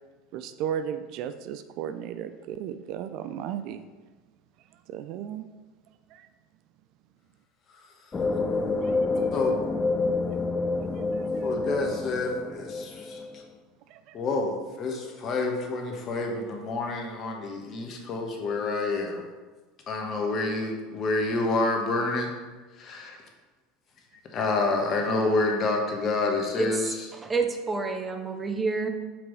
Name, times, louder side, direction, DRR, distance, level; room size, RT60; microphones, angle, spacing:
voice 1, 0.3-3.9 4.7-5.4 6.1-6.3 8.8-9.3 11.1-11.5 13.9-14.2, right 9 dB, 55° right, 10 dB, 0.3 m, -35 dB
sound 1, 8.1-13.4, left 3 dB, 25° left, 0.6 m, -28 dB
voice 2, 11.4-13.4 14.1-19.2 19.9-22.3 22.8-23.2 24.3-26.9, left 3 dB, 40° left, 2 dB, 1.2 m, -28 dB
voice 3, 26.6-28.9, right 4 dB, 20° right, 5 dB, 0.7 m, -29 dB
6.0 x 4.7 x 4.0 m, 1.3 s
hypercardioid pair, 75°, 0 cm